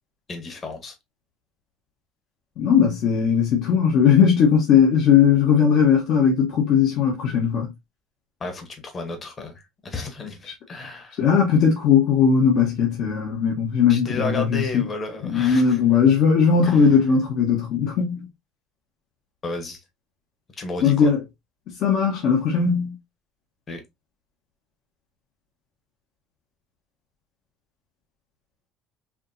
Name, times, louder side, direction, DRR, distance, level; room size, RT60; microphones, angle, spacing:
voice 1, 0.3-0.9 8.4-11.2 13.9-15.8 16.6-16.9 19.4-19.8 20.6-21.1 23.7-23.8, left 3 dB, 30° left, 1.2 m, -33 dB
voice 2, 2.6-7.7 10.5-10.6 11.2-14.9 15.2-18.3 20.8-21.2 21.8-22.9, left 6 dB, 60° left, 1.2 m, -18 dB
4.9 x 2.9 x 2.6 m
cardioid pair, 140°, 0 cm